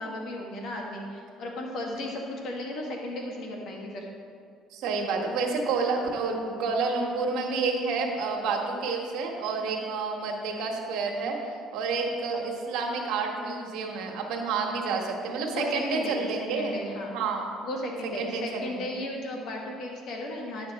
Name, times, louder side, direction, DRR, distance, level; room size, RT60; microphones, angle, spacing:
voice 1, 0.0-4.1 9.6-9.9 12.3-12.6 14.7-15.0 15.4-17.1 17.6-20.7, left 1 dB, 65° left, 0 dB, 1.6 m, -35 dB
voice 2, 4.7-16.7 17.1-17.5 18.2-18.9, right 4 dB, 70° right, 1 dB, 1.3 m, -29 dB
10.0 x 5.9 x 4.1 m, 2.3 s
supercardioid pair, 95°, 0 cm